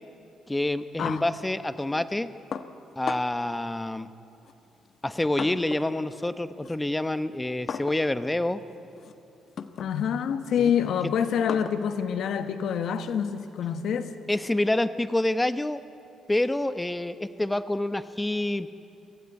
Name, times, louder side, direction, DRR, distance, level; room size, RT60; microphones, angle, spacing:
voice 1, 0.5-2.3 3.0-4.1 5.0-8.6 10.6-10.7 14.3-15.8 16.3-18.7, left 1 dB, 10° left, 12 dB, 0.8 m, -27 dB
sound 1, 2.5-3.5 4.4-6.0 6.3-13.6, left 6 dB, 55° left, 1.0 m, -40 dB
voice 2, 9.8-14.1, left 8 dB, 75° left, 9 dB, 1.3 m, -26 dB
24.0 x 16.0 x 9.6 m, 2.8 s
cardioid pair, 90°, 0 cm